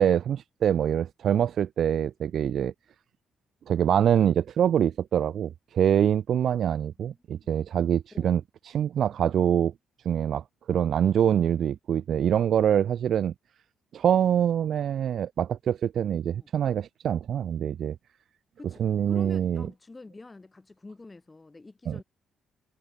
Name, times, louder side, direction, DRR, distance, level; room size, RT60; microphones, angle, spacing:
voice 1, 0.0-2.7 3.7-9.7 10.0-13.3 13.9-18.0 18.8-19.7 21.9-22.0, right 9 dB, 65° right, 0.9 m, -25 dB
voice 2, 18.6-22.0, left 3 dB, 20° left, 7.0 m, -47 dB
cardioid pair, 90°, 0 cm